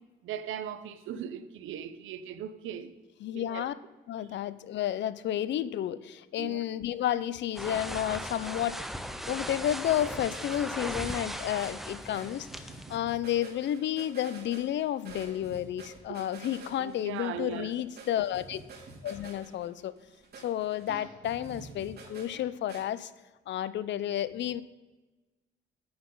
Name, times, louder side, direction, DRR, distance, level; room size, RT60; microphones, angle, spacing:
voice 1, 0.2-2.9 3.3-3.7 6.4-6.6 16.8-17.7, right 9 dB, 85° right, 0.8 m, -38 dB
voice 2, 3.2-3.7 4.1-8.8 9.3-18.6 19.0-19.9 20.4-23.1 23.5-24.6, left 11 dB, 65° left, 0.5 m, -31 dB
sound 1, 7.6-13.0, equal, ahead, 0.7 m, -38 dB
sound 2, 9.6-22.8, right 4 dB, 55° right, 2.8 m, -48 dB
9.6 x 9.5 x 3.9 m
cardioid pair, 90°, 20 cm